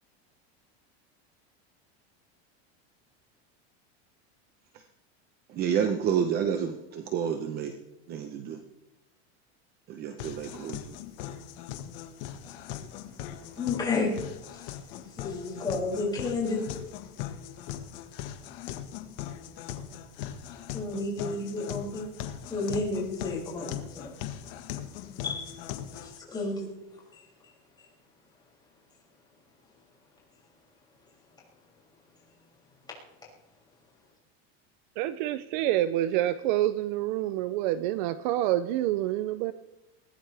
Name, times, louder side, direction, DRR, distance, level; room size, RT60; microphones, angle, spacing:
voice 1, 5.5-7.7 8.1-8.6 9.9-10.8, right 8 dB, 30° right, 6 dB, 0.9 m, -29 dB
sound 1, 10.2-26.2, left 10 dB, 55° left, 1.6 m, -40 dB
voice 2, 13.4-14.1 14.5-16.6 20.5-22.1 22.5-24.1 25.2-25.5 25.9-26.7 27.1-27.3, left 3 dB, 15° left, -5 dB, 6.7 m, -32 dB
voice 3, 35.0-39.5, right 13 dB, 45° right, 14 dB, 0.6 m, -27 dB
21.5 x 19.5 x 3.4 m, 0.99 s
supercardioid pair, 175°, 33 cm